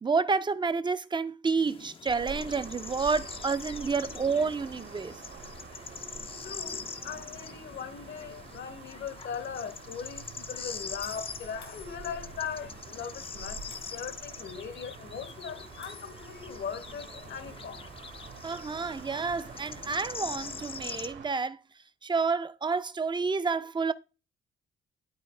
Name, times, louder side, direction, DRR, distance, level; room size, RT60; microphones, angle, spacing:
voice 1, 0.0-5.2 18.4-21.6 22.0-23.9, right 4 dB, 25° right, 0.5 m, -29 dB
sound 1, 1.6-21.1, left 5 dB, 30° left, 0.5 m, -44 dB
sound 2, 2.1-21.3, right 5 dB, 65° right, 1.4 m, -47 dB
voice 2, 6.2-17.8, left 7 dB, 65° left, 1.1 m, -40 dB
sound 3, 9.5-9.7 11.0-12.4 13.7-14.3 15.8-16.5, left 6 dB, 85° left, 2.0 m, -53 dB
12.0 x 4.0 x 3.3 m
cardioid pair, 90°, 20 cm